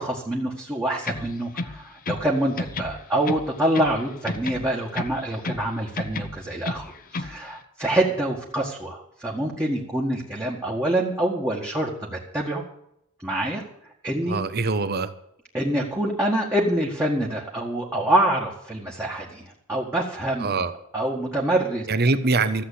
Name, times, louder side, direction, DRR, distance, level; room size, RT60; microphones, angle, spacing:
voice 1, 0.0-12.6 13.2-13.6 14.0-14.4 15.5-20.6 20.9-21.9, right 1 dB, 10° right, -4 dB, 1.7 m, -26 dB
sound 1, 1.0-2.3 2.6-4.0 4.3-5.7 6.0-7.4, left 2 dB, 40° left, 0.8 m, -32 dB
voice 2, 14.3-15.1 20.4-20.7 21.9-22.6, right 3 dB, 45° right, 12 dB, 1.0 m, -23 dB
14.0 x 7.8 x 8.5 m, 0.76 s
head